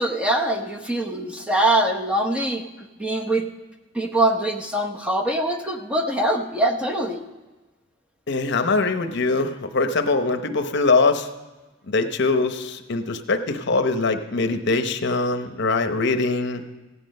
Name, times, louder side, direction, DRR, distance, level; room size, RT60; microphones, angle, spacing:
voice 1, 0.0-3.5 3.9-7.2, right 1 dB, 5° right, 2 dB, 0.8 m, -23 dB
voice 2, 8.3-11.3 11.9-16.6, left 3 dB, 60° left, 8 dB, 0.8 m, -22 dB
16.0 x 9.8 x 5.3 m, 1.2 s
head